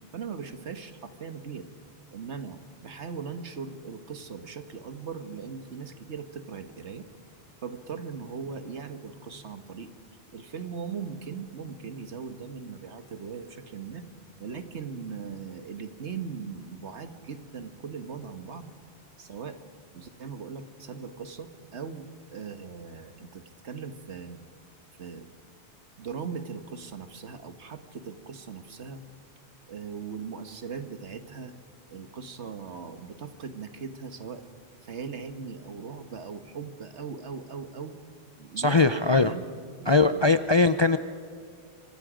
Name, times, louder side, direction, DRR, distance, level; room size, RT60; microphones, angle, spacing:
voice 1, 0.1-1.7 2.1-7.0 7.6-9.9 10.3-14.0 14.4-18.7 19.2-19.6 19.9-24.4 25.0-25.3 26.0-29.0 29.7-31.5 31.9-34.4 34.8-37.9 38.4-39.4 39.8-40.5, right 6 dB, 80° right, 9 dB, 1.6 m, -39 dB
voice 2, 38.6-39.3 39.9-41.0, left 3 dB, 35° left, 11 dB, 0.4 m, -21 dB
26.0 x 25.0 x 5.1 m, 2.2 s
omnidirectional pair, 1.2 m